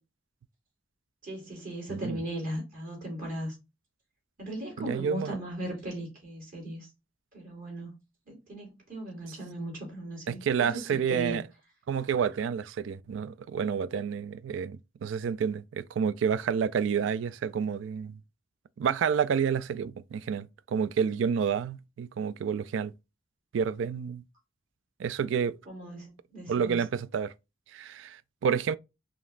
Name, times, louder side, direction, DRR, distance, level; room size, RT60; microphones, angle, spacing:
voice 1, 1.2-3.5 4.4-6.9 7.3-8.0 8.3-11.4 25.7-26.8, right 1 dB, 45° right, 2.7 m, -38 dB
voice 2, 1.9-2.2 4.8-5.4 10.3-11.5 11.9-18.2 18.8-22.9 23.5-24.2 25.0-25.6 26.5-27.3 27.7-28.8, right 7 dB, 80° right, 0.3 m, -29 dB
5.1 x 2.9 x 2.4 m
head